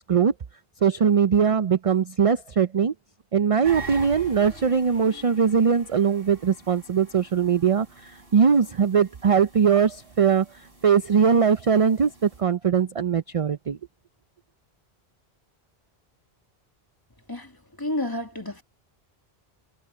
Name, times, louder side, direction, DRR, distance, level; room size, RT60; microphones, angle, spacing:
voice 1, 0.8-2.9 3.3-13.8, right 7 dB, 45° right, 0.5 m, -21 dB
sound 1, 3.6-12.4, right 3 dB, 65° right, 5.3 m, -44 dB
voice 2, 17.3-18.6, left 1 dB, 20° left, 1.9 m, -31 dB
omnidirectional pair, 1.1 m